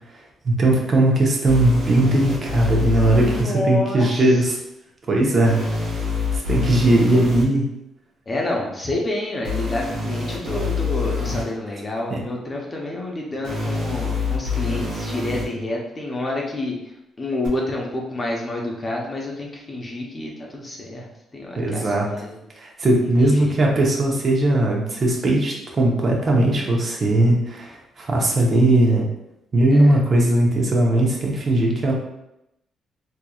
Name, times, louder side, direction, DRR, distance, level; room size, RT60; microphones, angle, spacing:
voice 1, 0.4-4.6 5.1-5.6 6.5-7.6 12.1-12.2 21.6-22.1 22.6-29.0 29.5-31.9, right 1 dB, 40° right, -1 dB, 0.9 m, -18 dB
sound 1, 1.5-3.4 5.4-7.4 9.4-11.4 13.4-15.4 17.4-17.5, left 4 dB, 90° right, 1.1 m, -26 dB
voice 2, 3.0-4.4 8.3-16.8 17.2-21.1 21.3-22.3 23.0-23.6 29.7-29.9, left 1 dB, 30° left, -1 dB, 0.8 m, -28 dB
3.6 x 3.0 x 2.3 m, 0.85 s
cardioid pair, 90°, 0 cm